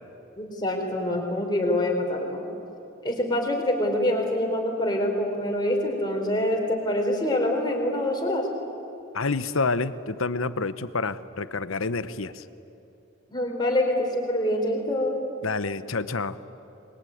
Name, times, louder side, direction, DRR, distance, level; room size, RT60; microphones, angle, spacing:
voice 1, 0.4-2.5 3.0-8.5 13.3-15.2, left 1 dB, 20° left, 1 dB, 4.2 m, -25 dB
voice 2, 9.1-12.4 15.4-16.4, left 3 dB, 80° left, 13 dB, 1.0 m, -28 dB
27.0 x 22.0 x 9.5 m, 2.9 s
head